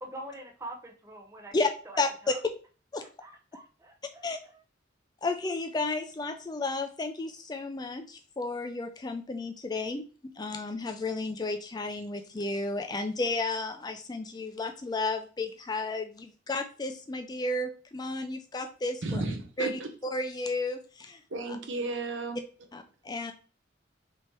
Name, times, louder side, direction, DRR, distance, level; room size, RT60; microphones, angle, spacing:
voice 1, 0.0-1.5 1.9-2.4 3.0-4.5, right 1 dB, 15° right, 1 dB, 0.7 m, -45 dB
voice 2, 2.0-2.3 2.9-3.0 4.2-4.4 5.2-19.2 19.6-19.8 20.1-21.2 22.7-23.3, left 2 dB, 20° left, 6 dB, 0.4 m, -32 dB
voice 3, 19.0-19.7 21.3-22.4, right 2 dB, 70° right, 5 dB, 0.8 m, -33 dB
3.4 x 2.8 x 4.4 m, 0.36 s
head